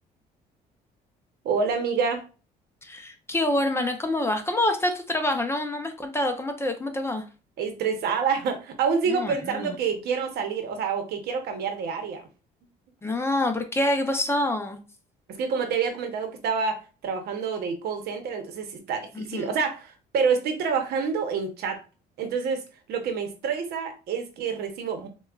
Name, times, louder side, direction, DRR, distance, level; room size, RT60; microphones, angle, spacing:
voice 1, 1.4-2.2 7.6-12.2 15.3-21.8 22.2-25.1, right 5 dB, 70° right, 6 dB, 0.9 m, -27 dB
voice 2, 2.8-7.2 9.1-9.8 13.0-14.8 19.1-19.5, left 1 dB, 15° left, 6 dB, 0.6 m, -26 dB
5.8 x 2.3 x 2.4 m, 0.33 s
cardioid pair, 110°, 17 cm